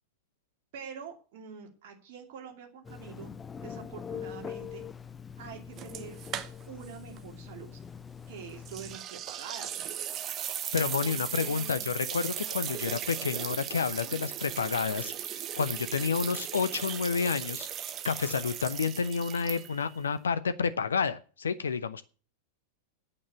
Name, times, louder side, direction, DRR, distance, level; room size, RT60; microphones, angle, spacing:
voice 1, 0.7-3.3 3.6-4.8 5.4-6.2 6.7-7.8 8.3-9.9 11.0-11.9, right 7 dB, 50° right, 2.6 m, -45 dB
Telephone, 2.8-9.0, left 7 dB, 15° left, 0.8 m, -43 dB
sound 1, 5.8-6.9 7.2-7.3 8.6-19.9, right 10 dB, 30° right, 1.1 m, -37 dB
voice 2, 10.7-17.7 18.0-22.0, left 5 dB, 70° left, 0.8 m, -30 dB
9.1 x 8.7 x 8.2 m
figure-of-eight pair, 90°, 0 cm